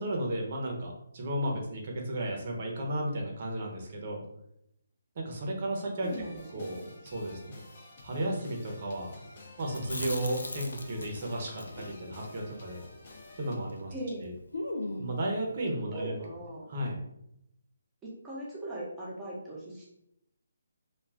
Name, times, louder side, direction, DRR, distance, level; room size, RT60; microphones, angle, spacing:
voice 1, 0.0-4.2 5.2-6.1 6.5-7.6 8.0-9.1 9.6-12.8 13.4-13.9 14.2-14.3 15.0-16.1 16.7-17.0, right 1 dB, 45° right, 0 dB, 0.8 m, -34 dB
sound 1, 6.0-13.6, left 2 dB, 40° left, 0.7 m, -52 dB
voice 2, 6.0-6.8 13.9-14.3 15.9-16.6 18.0-19.9, right 1 dB, 10° right, -7 dB, 0.9 m, -39 dB
Chewing mastication, 9.7-13.9 14.1-14.2 14.5-15.3, left 2 dB, 85° left, 0.5 m, -39 dB
2.4 x 2.3 x 3.4 m, 0.79 s
figure-of-eight pair, 155°, 0 cm